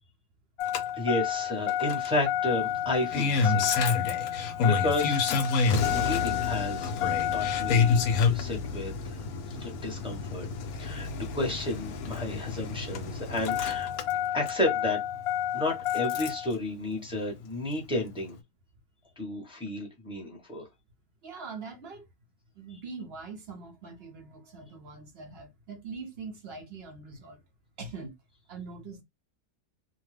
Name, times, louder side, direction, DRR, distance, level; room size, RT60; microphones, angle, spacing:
Engine starting, 0.6-16.5 17.8-17.9, left 6 dB, 70° left, 1.0 m, -28 dB
voice 1, 1.0-3.9 4.2-5.2 5.9-8.0 8.3-9.2 9.6-10.5 10.8-13.9 14.3-15.0 15.5-18.4 19.2-20.6, left 1 dB, 5° right, 0.7 m, -32 dB
voice 2, 21.2-22.1 22.6-27.4 27.8-28.1 28.5-29.0, right 4 dB, 65° right, 0.6 m, -42 dB
2.7 x 2.2 x 3.2 m
omnidirectional pair, 1.7 m